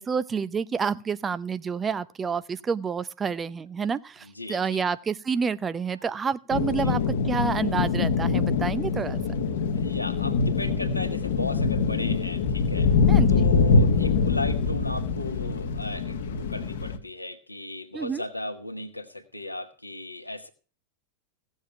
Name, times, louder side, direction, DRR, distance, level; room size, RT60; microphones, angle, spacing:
voice 1, 0.0-9.2 13.1-13.3 17.9-18.2, right 6 dB, 20° right, 0.6 m, -29 dB
voice 2, 4.2-4.8 6.8-6.9 9.7-12.9 13.3-20.5, left 2 dB, 85° left, 1.6 m, -35 dB
sound 1, 6.5-17.0, left 4 dB, 55° left, 1.4 m, -24 dB
17.0 x 7.3 x 5.8 m
figure-of-eight pair, 90°, 0 cm